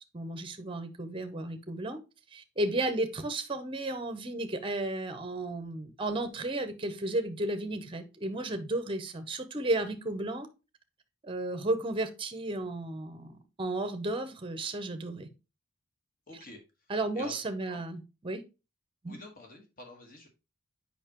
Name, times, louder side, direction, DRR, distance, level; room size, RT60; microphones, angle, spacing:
voice 1, 0.1-2.0 2.3-10.5 11.2-13.3 13.6-15.3 16.9-18.4 19.0-19.2, right 2 dB, 25° right, 9 dB, 0.7 m, -33 dB
voice 2, 16.3-16.6 17.1-17.4 17.7-17.8 19.0-20.3, left 3 dB, 40° left, 2 dB, 1.4 m, -47 dB
7.1 x 5.2 x 2.9 m, 0.28 s
head